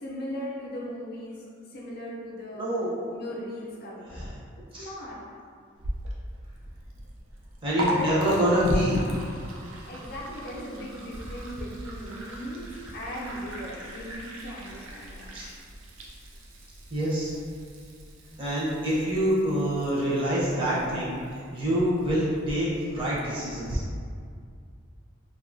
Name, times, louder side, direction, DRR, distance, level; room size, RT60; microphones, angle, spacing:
voice 1, 0.0-1.4 1.7-2.6 3.1-4.3 4.7-5.2 7.8-8.4 9.9-15.3, equal, 50° left, -5 dB, 0.5 m, -38 dB
voice 2, 2.5-3.0 4.1-4.3 4.7-4.9 7.6-9.0 15.3-15.5 16.9-17.3 18.4-23.8, equal, 25° right, -8 dB, 0.6 m, -26 dB
Liquid, 5.8-23.8, right 1 dB, 75° right, 0.4 m, -39 dB
2.6 x 2.3 x 2.5 m, 2.2 s
head